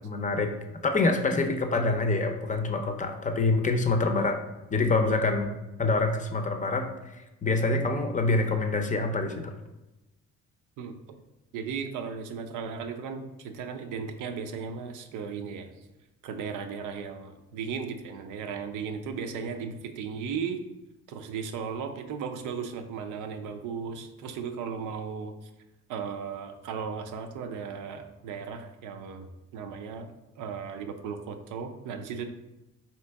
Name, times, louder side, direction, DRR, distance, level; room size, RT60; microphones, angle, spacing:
voice 1, 0.0-0.5 0.8-4.4 4.7-5.5 5.8-6.9 7.1-9.5, left 3 dB, 25° left, 5 dB, 0.5 m, -26 dB
voice 2, 10.8-11.2 11.5-15.7 16.2-20.6 21.1-25.3 25.9-29.3 29.5-32.3, right 6 dB, 85° right, 6 dB, 0.5 m, -36 dB
4.3 x 2.8 x 3.4 m, 1.0 s
cardioid pair, 90°, 30 cm